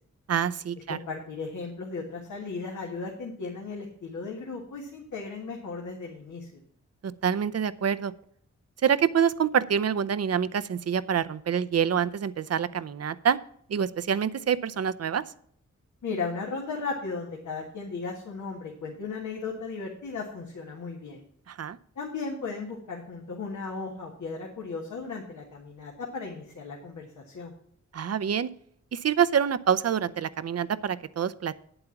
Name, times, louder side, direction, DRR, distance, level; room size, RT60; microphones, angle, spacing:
voice 1, 0.3-1.0 7.0-8.1 8.8-13.4 13.7-15.2 21.5-21.8 27.9-28.5 28.9-31.6, right 8 dB, 55° right, 16 dB, 0.6 m, -26 dB
voice 2, 0.9-6.5 16.0-21.2 22.0-27.5, left 4 dB, 90° left, -1 dB, 1.7 m, -36 dB
8.7 x 7.9 x 5.8 m, 0.66 s
cardioid pair, 55°, 29 cm